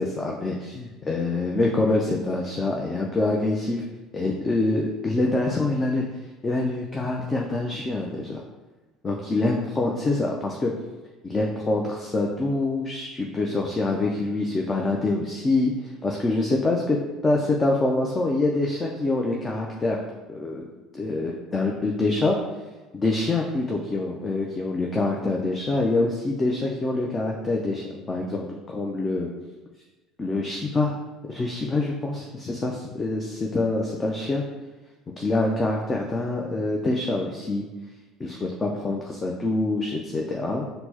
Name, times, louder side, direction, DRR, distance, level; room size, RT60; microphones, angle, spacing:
voice 1, 0.0-3.9 4.1-6.0 6.4-8.4 9.0-10.7 11.2-17.0 17.2-20.0 20.3-20.7 20.9-22.4 22.9-29.3 30.2-31.0 31.3-34.4 35.2-37.6 38.2-40.7, left 2 dB, 25° left, 0 dB, 0.4 m, -25 dB
4.3 x 2.0 x 2.8 m, 1.2 s
supercardioid pair, 100°, 0 cm